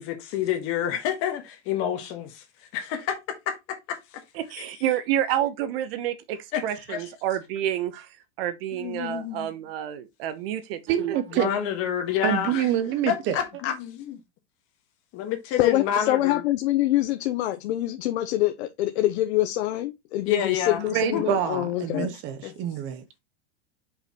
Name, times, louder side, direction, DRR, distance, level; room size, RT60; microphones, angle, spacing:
voice 1, 0.0-2.4 2.7-4.2 6.5-6.6 6.9-7.0 8.7-9.5 11.3-12.7 13.1-14.2 15.1-16.4 20.3-20.8 21.1-21.2 21.9-22.1 22.4-22.5, left 10 dB, 40° left, 1.5 m, -28 dB
voice 2, 4.3-10.8 11.1-11.2, right 11 dB, 55° right, 1.0 m, -29 dB
voice 3, 10.9-11.7 12.2-13.4 20.9-23.2, right 10 dB, 35° right, 0.7 m, -26 dB
voice 4, 15.6-22.1, left 15 dB, 65° left, 0.8 m, -25 dB
6.3 x 5.4 x 3.0 m
supercardioid pair, 145°, 35 cm